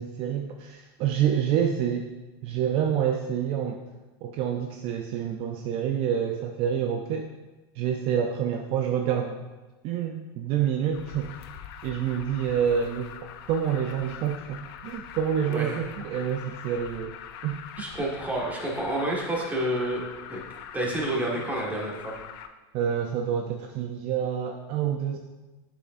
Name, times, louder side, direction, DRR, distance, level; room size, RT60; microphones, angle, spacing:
voice 1, 0.0-2.1 2.4-3.8 4.2-7.3 7.8-9.4 9.8-11.3 11.8-13.1 13.5-17.1 17.4-17.6 22.7-25.2, right 8 dB, 45° right, 4 dB, 0.5 m, -27 dB
Alarm, 10.9-22.5, left 9 dB, 65° left, 0.5 m, -43 dB
voice 2, 15.5-15.8 17.8-20.4 20.7-22.2, right 1 dB, 10° right, -3 dB, 1.6 m, -29 dB
7.8 x 6.3 x 2.6 m, 1.1 s
supercardioid pair, 120°, 13 cm